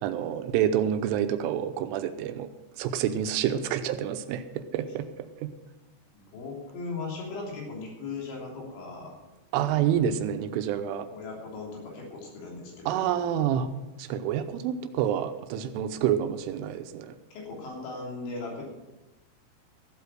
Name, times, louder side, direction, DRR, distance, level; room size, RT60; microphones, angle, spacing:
voice 1, 0.0-2.5 2.8-5.1 5.4-5.5 9.5-11.1 12.9-13.7 14.0-17.2, right 9 dB, 90° right, 9 dB, 3.2 m, -28 dB
voice 2, 6.3-9.1 11.1-13.2 17.3-18.7, left 3 dB, 70° left, -1 dB, 5.4 m, -38 dB
15.0 x 8.5 x 6.2 m, 1.0 s
omnidirectional pair, 5.6 m